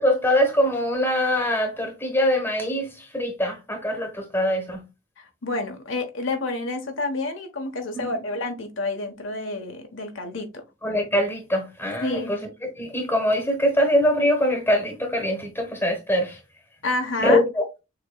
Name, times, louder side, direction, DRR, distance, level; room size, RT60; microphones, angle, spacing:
voice 1, 0.0-4.8 7.9-8.1 10.8-12.5 12.8-16.4 17.2-17.6, left 1 dB, 10° left, 1.1 m, -23 dB
voice 2, 5.2-10.6 12.0-12.4 16.8-17.4, left 2 dB, 70° left, 1.0 m, -29 dB
6.6 x 2.9 x 2.2 m
head